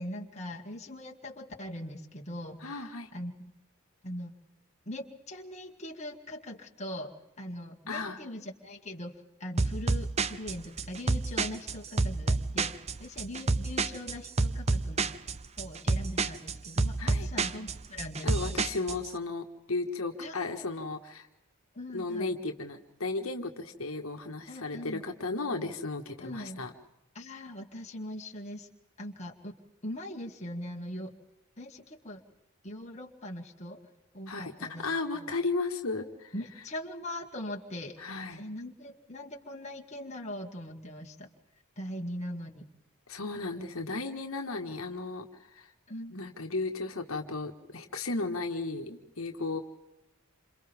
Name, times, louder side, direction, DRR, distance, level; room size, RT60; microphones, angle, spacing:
voice 1, 0.0-3.5 4.0-4.3 4.9-15.1 15.6-18.6 20.2-20.5 21.7-22.4 24.5-25.0 26.2-26.6 27.1-28.7 29.0-29.5 29.8-31.1 31.6-32.2 32.6-33.8 34.1-34.8 35.1-35.3 36.3-38.0 38.3-41.3 41.8-42.7 45.9-46.3, left 1 dB, 30° left, 1 dB, 2.1 m, -41 dB
voice 2, 2.6-3.1 7.9-8.2 17.0-17.3 18.2-21.3 21.9-26.7 34.3-36.3 38.0-38.4 43.1-45.7 46.1-49.6, left 3 dB, 75° left, 4 dB, 1.8 m, -35 dB
sound 1, 9.6-19.1, right 3 dB, 30° right, 0.6 m, -29 dB
28.5 x 27.5 x 3.6 m, 0.94 s
head